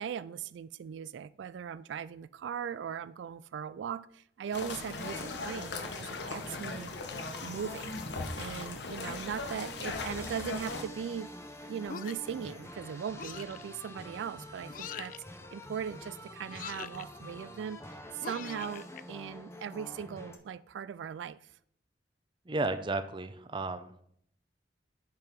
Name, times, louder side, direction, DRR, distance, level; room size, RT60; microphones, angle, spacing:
voice 1, 0.0-6.9 7.4-8.0 8.4-11.3 11.7-15.1 15.5-21.4, right 7 dB, 85° right, 0.3 m, -39 dB
sound 1, 4.5-10.8, left 3 dB, 75° left, 1.0 m, -38 dB
sound 2, 5.0-20.4, left 1 dB, 15° left, 0.8 m, -48 dB
sound 3, 11.9-12.4 13.2-13.6 14.7-15.2 16.5-17.1 18.2-19.0, left 8 dB, 45° left, 0.3 m, -43 dB
voice 2, 22.5-24.0, right 2 dB, 25° right, 0.6 m, -33 dB
10.5 x 4.6 x 5.3 m
head